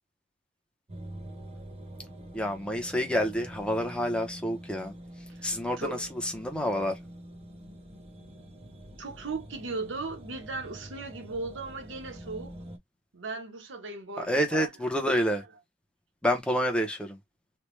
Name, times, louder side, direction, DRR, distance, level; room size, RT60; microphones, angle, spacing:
sound 1, 0.9-12.8, right 1 dB, 30° right, 0.8 m, -46 dB
voice 1, 2.3-4.9 5.4-7.0 14.2-15.4 16.2-17.2, equal, 5° left, 0.7 m, -28 dB
voice 2, 9.0-12.5 13.1-14.7 15.3-15.4, right 3 dB, 70° right, 0.9 m, -37 dB
3.2 x 2.3 x 3.1 m
head